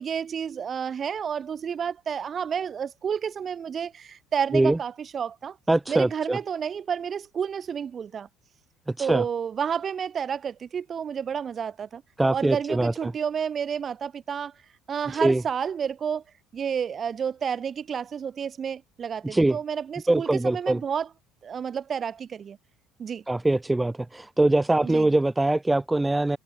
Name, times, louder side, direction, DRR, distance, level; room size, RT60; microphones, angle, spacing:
voice 1, 0.0-5.6 5.9-8.3 9.0-12.0 12.3-14.5 14.9-16.2 16.5-21.1 21.4-22.6 23.0-23.2 24.8-25.1, right 7 dB, 35° right, 2.2 m, -30 dB
voice 2, 5.7-6.4 8.9-9.2 12.2-13.1 15.1-15.4 19.2-19.6 20.1-20.8 23.3-26.4, right 2 dB, 10° right, 0.4 m, -23 dB
supercardioid pair, 105°, 0 cm